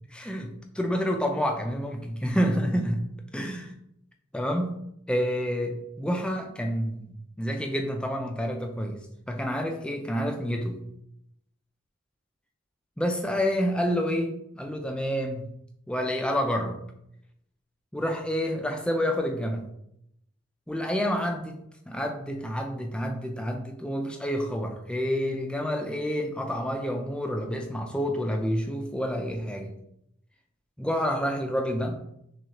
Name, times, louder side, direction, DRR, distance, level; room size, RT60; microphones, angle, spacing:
voice 1, 0.1-3.0 3.3-3.7 4.3-4.8 5.1-7.1 7.4-9.0 9.3-10.8 13.0-15.5 15.9-16.8 17.9-19.7 20.7-29.7 30.8-32.0, equal, 5° left, 3 dB, 0.4 m, -28 dB
6.2 x 2.4 x 2.9 m, 0.77 s
head